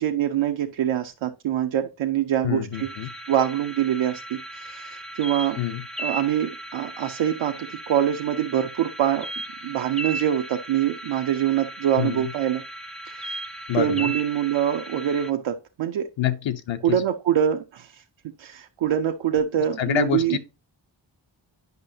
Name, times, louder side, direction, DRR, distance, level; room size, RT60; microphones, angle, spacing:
voice 1, 0.0-2.9 3.3-5.6 6.0-9.3 9.6-12.6 13.0-13.4 13.8-16.1 16.8-20.4, right 10 dB, 85° right, 0.6 m, -24 dB
voice 2, 2.4-3.1 5.6-5.8 12.0-12.3 13.7-14.1 16.2-17.0 19.8-20.4, left 10 dB, 75° left, 0.7 m, -26 dB
sound 1, 2.7-15.3, right 1 dB, ahead, 0.3 m, -37 dB
9.4 x 5.4 x 2.7 m
wide cardioid pair, 150°, 46 cm